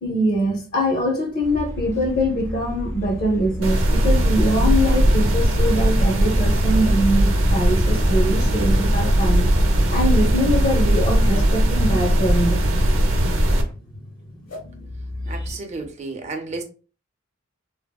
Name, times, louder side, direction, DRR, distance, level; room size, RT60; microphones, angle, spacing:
voice 1, 0.0-9.5 9.9-12.6 14.6-14.8 15.2-15.5, equal, 50° left, 0.7 m, -23 dB
sound 1, 1.4-13.7, equal, 15° left, 0.5 m, -32 dB
sound 2, 3.6-13.6, right 1 dB, 70° right, 0.7 m, -19 dB
sound 3, 4.6-4.7 5.7-5.9 6.8-7.0 7.8-7.9 9.0-9.1 10.3-10.5 11.3-11.5 12.5-12.6 13.5-13.6 14.5-14.6, left 3 dB, 80° left, 1.2 m, -38 dB
voice 2, 15.3-16.6, right 3 dB, 35° right, 0.6 m, -32 dB
3.4 x 2.0 x 2.3 m
head